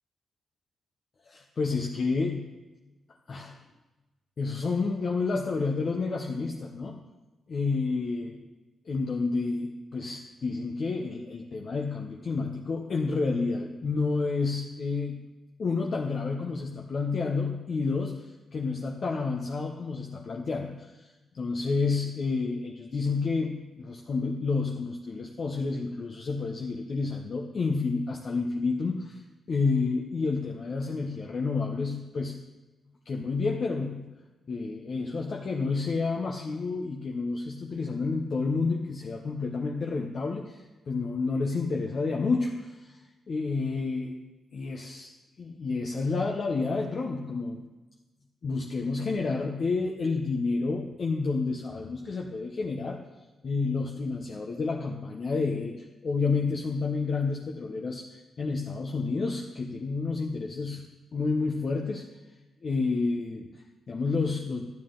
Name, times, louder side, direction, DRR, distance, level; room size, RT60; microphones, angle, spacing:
voice 1, 1.2-2.5 3.3-3.6 4.4-7.0 7.5-8.4 8.8-15.2 15.6-29.2 29.5-32.4 33.1-34.1 34.5-44.2 44.5-45.1 45.4-47.7 48.4-53.0 53.4-60.8 61.1-62.1 62.6-64.6, left 4 dB, 45° left, 1 dB, 0.7 m, -30 dB
12.0 x 9.7 x 3.8 m, 1.1 s
wide cardioid pair, 135°, 0 cm